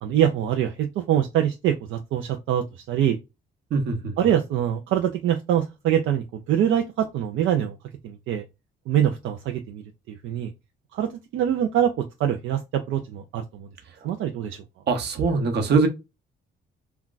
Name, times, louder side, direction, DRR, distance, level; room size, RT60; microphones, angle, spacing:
voice 1, 0.0-3.2 4.2-7.8 8.0-8.4 8.9-10.5 10.9-11.9 12.2-13.7 14.0-14.6, right 10 dB, 80° right, 0.4 m, -24 dB
voice 2, 3.7-4.1 14.9-15.9, right 4 dB, 60° right, 0.9 m, -22 dB
2.3 x 2.2 x 3.8 m
cardioid pair, 90°, 20 cm